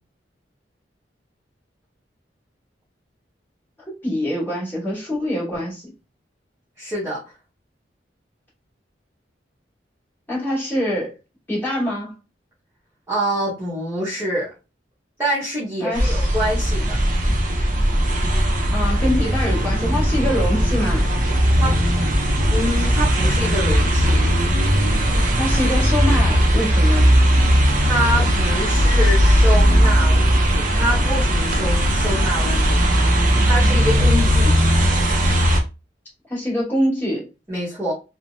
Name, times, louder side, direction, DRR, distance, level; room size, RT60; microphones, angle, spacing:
voice 1, 3.9-5.9 10.3-11.1 11.5-12.1 15.8-16.2 18.7-21.0 25.4-27.1 36.3-37.3, equal, 10° left, 1.7 m, -24 dB
voice 2, 6.8-7.2 13.1-14.5 15.2-17.0 21.5-21.8 22.5-24.3 27.8-32.9 33.2-34.5 37.5-37.9, equal, 15° right, 0.9 m, -26 dB
sound 1, 15.9-35.6, equal, 45° right, 0.6 m, -18 dB
3.2 x 2.0 x 2.6 m
head